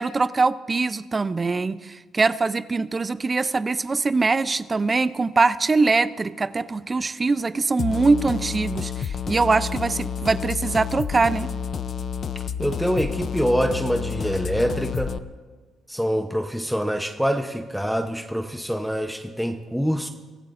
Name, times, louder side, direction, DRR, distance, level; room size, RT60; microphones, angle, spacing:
voice 1, 0.0-11.5, right 3 dB, 30° right, 14 dB, 0.5 m, -22 dB
sound 1, 7.8-15.2, left 7 dB, 50° left, 0.6 m, -30 dB
voice 2, 12.6-15.1 15.9-20.1, equal, ahead, 5 dB, 0.8 m, -25 dB
24.5 x 14.5 x 2.6 m, 1.4 s
cardioid pair, 90°, 0 cm